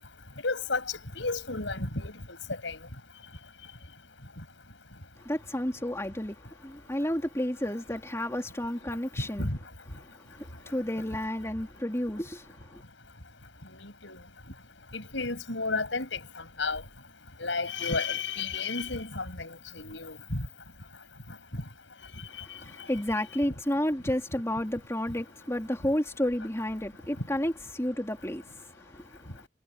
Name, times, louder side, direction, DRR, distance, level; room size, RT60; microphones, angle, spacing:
voice 1, 0.4-0.8 1.1-2.1 2.6-2.8 9.4-9.6 13.7-14.2 14.9-16.8 17.4-20.5, left 3 dB, 75° left, 7.0 m, -32 dB
voice 2, 5.2-9.5 9.9-12.8 22.3-29.5, left 1 dB, 15° left, 3.6 m, -32 dB
head